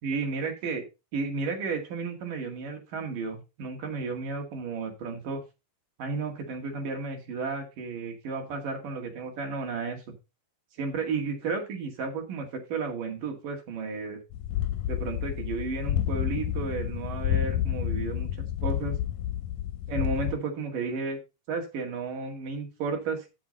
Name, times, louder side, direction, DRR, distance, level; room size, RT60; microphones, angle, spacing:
voice 1, 0.0-0.8 1.1-5.4 6.0-10.0 10.8-14.2 14.9-19.0 19.9-21.2 21.5-23.3, right 4 dB, 65° right, 2 dB, 3.6 m, -33 dB
sound 1, 14.3-20.4, left 12 dB, 80° left, 2.0 m, -30 dB
8.7 x 8.2 x 4.0 m, 0.26 s
omnidirectional pair, 4.1 m